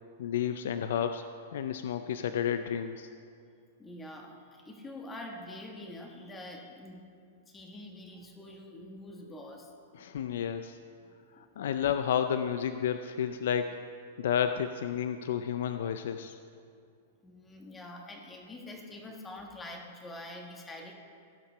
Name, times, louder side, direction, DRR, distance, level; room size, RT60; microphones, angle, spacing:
voice 1, 0.2-1.2 1.5-3.1 10.0-10.8 11.4-13.8 14.2-16.4, left 8 dB, 70° left, 9 dB, 0.4 m, -31 dB
voice 2, 3.8-7.1 7.5-9.7 11.1-11.5 17.2-20.9, left 1 dB, 15° left, 1 dB, 1.4 m, -45 dB
16.5 x 5.9 x 4.5 m, 2.4 s
hypercardioid pair, 140°, 0 cm